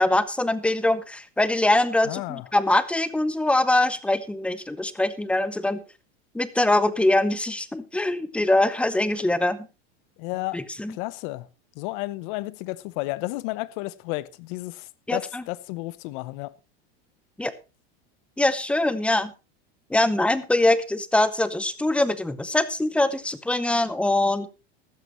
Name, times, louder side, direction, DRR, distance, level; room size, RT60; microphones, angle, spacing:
voice 1, 0.0-5.8 6.3-9.7 10.5-11.0 15.1-15.4 17.4-17.5 18.4-19.3 19.9-24.5, left 1 dB, 5° left, 0.7 m, -23 dB
voice 2, 2.0-2.5 10.2-10.6 10.9-11.5 11.8-16.5, left 20 dB, 55° left, 0.8 m, -32 dB
14.5 x 12.5 x 3.1 m
supercardioid pair, 145°, 31 cm